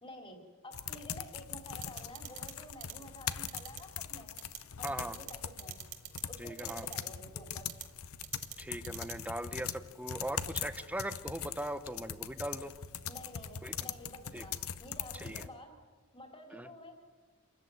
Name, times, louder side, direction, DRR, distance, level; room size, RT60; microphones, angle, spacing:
voice 1, 0.0-4.3 4.8-5.8 6.3-7.7 13.1-15.8 16.1-17.0, left 1 dB, 25° left, 3 dB, 3.1 m, -50 dB
sound 1, 0.7-15.5, left 9 dB, 70° left, 0.8 m, -42 dB
sound 2, 1.8-2.5 2.8-2.9 3.5-3.8 4.4-4.6 4.9-5.3 5.6-6.2 6.6-7.0 7.7-7.8 8.2-8.5 8.8-9.1, right 14 dB, 85° right, 1.9 m, -43 dB
voice 2, 4.8-5.2 6.4-6.9 8.6-12.7 13.6-13.7 14.3-14.4 15.2-15.4 16.5-16.7, right 1 dB, 5° right, 11 dB, 0.9 m, -39 dB
27.0 x 14.0 x 9.4 m, 1.5 s
head